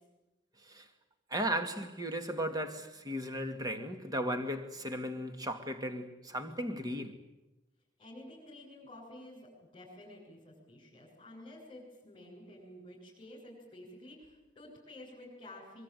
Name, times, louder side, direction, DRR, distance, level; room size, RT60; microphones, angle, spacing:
voice 1, 1.3-7.2, equal, 20° right, 2.4 m, -36 dB
voice 2, 8.0-15.8, left 1 dB, 30° left, 7.9 m, -51 dB
23.5 x 23.5 x 9.3 m
head